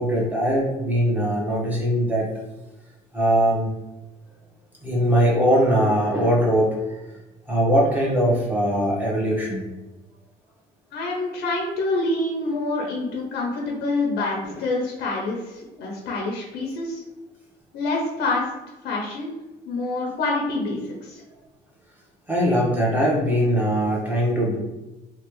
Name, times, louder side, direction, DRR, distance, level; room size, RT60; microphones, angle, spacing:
voice 1, 0.0-2.3 3.1-3.7 4.8-6.7 7.5-9.6 14.4-14.5 22.3-24.6, equal, 10° right, -5 dB, 1.1 m, -21 dB
voice 2, 10.9-17.0 17.7-18.5 18.8-19.3 19.7-21.2, left 2 dB, 80° left, -2 dB, 0.7 m, -26 dB
3.1 x 2.4 x 3.1 m, 1.0 s
cardioid pair, 110°, 17 cm